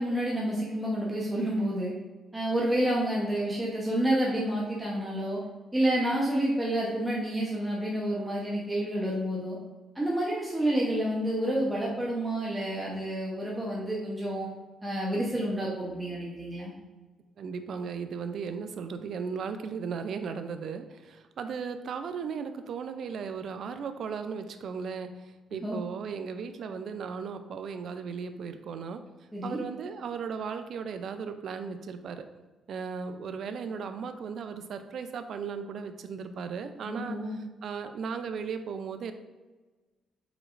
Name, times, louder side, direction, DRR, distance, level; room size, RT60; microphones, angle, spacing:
voice 1, 0.0-1.9 2.3-5.4 5.7-9.6 9.9-14.5 14.8-16.7 25.5-25.8 29.3-29.6 36.9-37.4, right 1 dB, 10° right, -5 dB, 0.9 m, -29 dB
voice 2, 17.4-29.0 29.4-32.3 32.7-37.2 37.6-39.1, right 6 dB, 65° right, 9 dB, 0.4 m, -36 dB
4.9 x 4.1 x 2.5 m, 1.2 s
cardioid pair, 90°, 0 cm